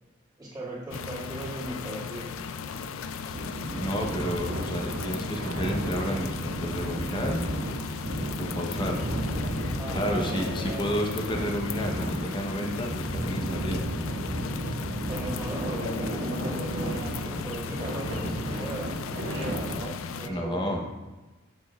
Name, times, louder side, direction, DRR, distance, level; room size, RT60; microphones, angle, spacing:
voice 1, 0.4-2.3 2.7-2.9 9.8-11.0 14.8-20.9, right 1 dB, 20° right, -7 dB, 2.0 m, -38 dB
sound 1, 0.9-20.3, left 6 dB, 85° left, 0.4 m, -37 dB
sound 2, 3.3-19.7, right 1 dB, 85° right, 1.3 m, -33 dB
voice 2, 3.7-7.4 8.4-9.4 9.9-14.1 20.3-20.8, equal, 25° left, 1 dB, 0.8 m, -31 dB
7.5 x 6.5 x 2.3 m, 1.1 s
head